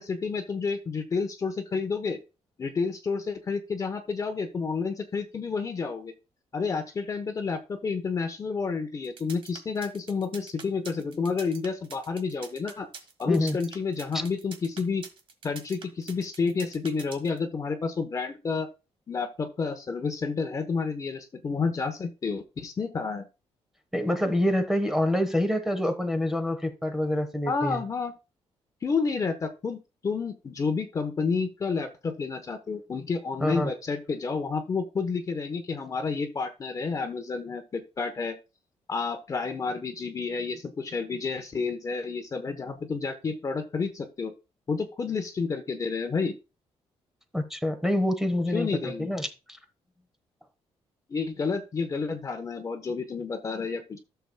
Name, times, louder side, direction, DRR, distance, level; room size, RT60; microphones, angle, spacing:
voice 1, 0.0-2.2 2.6-6.1 6.5-12.9 13.2-15.0 15.4-18.7 19.1-23.3 27.5-28.1 28.8-29.8 30.0-38.3 38.9-44.3 44.7-46.3 48.5-49.1 51.1-54.0, left 4 dB, 30° left, 0.9 m, -30 dB
sound 1, 9.0-17.4, right 5 dB, 55° right, 1.5 m, -45 dB
voice 2, 23.9-27.8 33.4-33.7 47.3-49.3, left 1 dB, 5° right, 1.1 m, -26 dB
14.0 x 6.9 x 2.2 m
cardioid pair, 155°, 11 cm